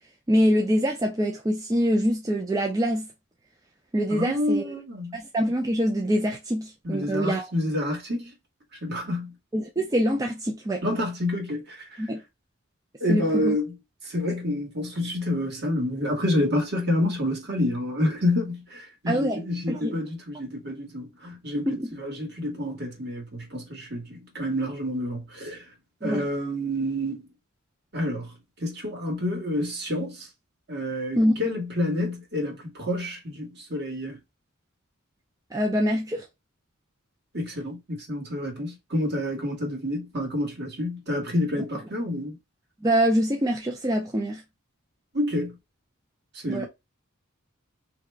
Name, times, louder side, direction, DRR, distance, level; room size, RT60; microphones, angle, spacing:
voice 1, 0.3-3.1 3.9-4.6 5.1-7.5 9.5-10.8 12.0-12.2 13.1-13.6 19.1-19.4 19.7-20.0 21.7-21.9 26.0-26.2 31.2-31.4 35.5-36.2 42.8-44.4 46.5-46.7, equal, 15° right, 0.5 m, -24 dB
voice 2, 4.1-5.2 6.8-8.3 8.8-9.3 10.8-12.0 13.0-13.8 14.0-25.6 26.0-27.3 27.9-28.3 28.6-30.3 30.7-34.2 37.3-42.4 45.1-45.6 46.4-46.7, left 1 dB, 55° right, 1.5 m, -28 dB
3.2 x 2.8 x 3.4 m
head